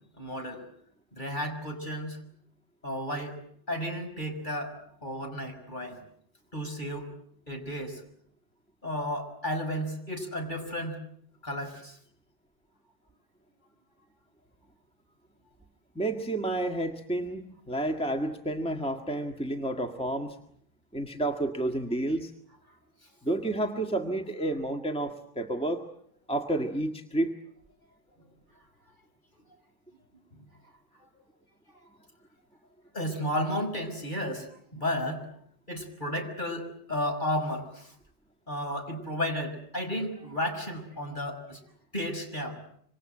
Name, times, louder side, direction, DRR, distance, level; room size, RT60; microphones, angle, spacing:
voice 1, 0.2-0.6 1.1-2.2 2.8-3.4 3.7-6.0 6.5-7.1 7.5-8.0 8.8-11.0 11.4-12.0 30.3-30.5 32.9-34.5 34.7-35.3 35.7-37.9 38.5-41.6 41.9-42.6, equal, 50° left, 4 dB, 5.9 m, -33 dB
voice 2, 16.0-20.4 20.9-22.3 23.2-25.8 26.3-27.3, right 1 dB, 5° left, 3 dB, 1.9 m, -30 dB
27.0 x 25.5 x 7.9 m, 0.67 s
omnidirectional pair, 1.0 m